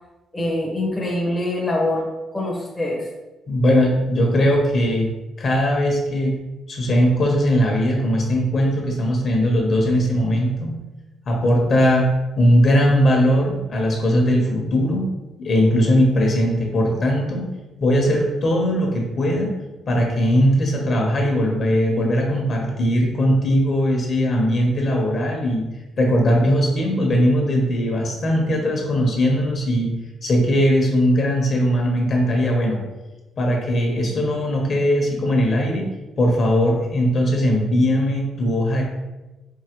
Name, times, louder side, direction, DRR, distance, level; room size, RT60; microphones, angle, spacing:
voice 1, 0.3-2.0 2.3-3.0, left 1 dB, 5° left, -3 dB, 0.6 m, -24 dB
voice 2, 3.5-5.1 5.4-6.4 6.7-10.7 11.3-12.1 12.4-15.1 15.4-17.5 17.8-19.5 19.9-25.6 26.0-29.9 30.2-32.8 33.4-35.9 36.2-38.8, equal, 40° left, 0 dB, 0.8 m, -19 dB
4.7 x 2.7 x 2.9 m, 1.1 s
cardioid pair, 155°, 0 cm